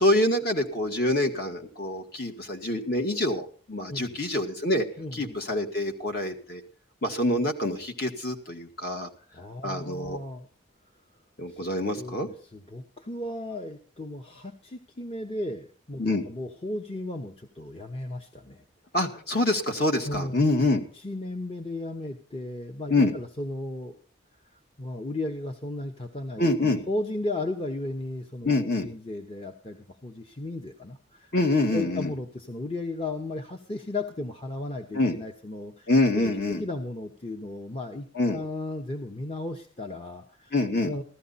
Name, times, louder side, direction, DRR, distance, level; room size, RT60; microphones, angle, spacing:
voice 1, 0.0-4.8 5.1-6.6 7.0-9.1 9.6-10.2 11.4-12.3 16.0-16.3 18.9-20.8 22.9-23.1 26.4-26.8 28.4-28.9 31.3-32.1 34.9-35.2 35.9-36.6 38.2-38.4 40.5-40.9, left 2 dB, 50° left, 4 dB, 1.8 m, -26 dB
voice 2, 5.0-5.4 9.3-10.5 11.5-11.6 11.9-18.6 20.0-20.4 21.0-24.0 24.8-28.5 28.8-31.3 31.7-35.9 36.2-38.1 38.3-40.5 40.8-41.0, left 2 dB, 30° left, 4 dB, 0.9 m, -35 dB
15.5 x 13.0 x 4.1 m, 0.43 s
head